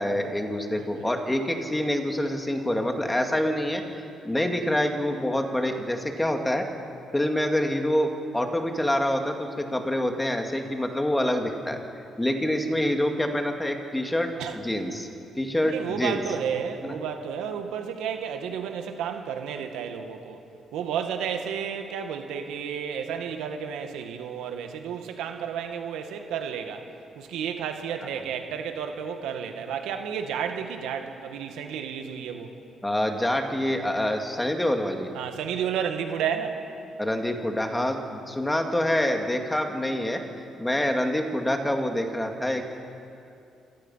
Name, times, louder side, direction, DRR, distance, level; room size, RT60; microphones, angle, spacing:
voice 1, 0.0-3.8 4.2-6.6 7.1-11.8 12.2-15.1 15.4-16.2 16.8-17.0 32.8-35.1 37.0-40.2 40.6-42.7, left 1 dB, 10° left, 4 dB, 2.3 m, -26 dB
voice 2, 0.7-1.1 14.4-14.6 15.6-20.4 20.7-26.8 27.2-32.5 35.1-36.6, right 7 dB, 90° right, 5 dB, 1.8 m, -32 dB
27.0 x 17.5 x 5.7 m, 2.6 s
cardioid pair, 90°, 0 cm